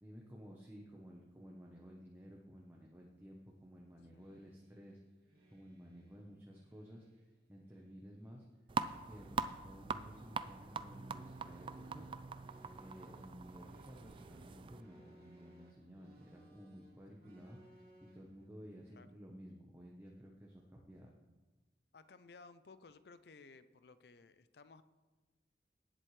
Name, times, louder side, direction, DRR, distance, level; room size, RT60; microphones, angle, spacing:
voice 1, 0.0-5.0 5.5-7.2 7.5-8.4 9.0-12.1 12.7-17.9 18.1-21.1, equal, 10° right, -2 dB, 1.0 m, -54 dB
sound 1, 3.3-18.5, right 1 dB, 55° right, 2.5 m, -65 dB
sound 2, 8.7-14.8, right 4 dB, 30° right, 0.3 m, -43 dB
voice 2, 21.9-24.8, left 4 dB, 60° left, 13 dB, 0.5 m, -58 dB
18.0 x 7.7 x 3.2 m, 1.2 s
head